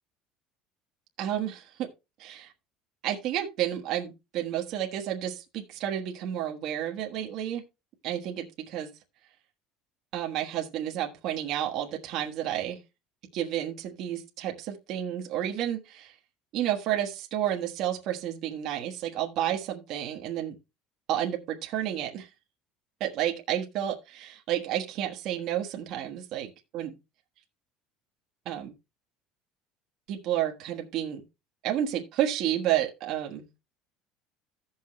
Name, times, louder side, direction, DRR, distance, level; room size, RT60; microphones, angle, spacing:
voice 1, 1.2-1.9 2.2-2.5 3.0-7.6 8.0-8.9 10.1-12.8 13.3-16.1 16.5-20.5 21.1-22.3 23.0-26.5 26.7-26.9 28.4-28.7 30.1-31.2 31.6-33.5, right 11 dB, 45° right, 1.3 m, -31 dB
15.5 x 5.8 x 3.1 m
cardioid pair, 180°, 0 cm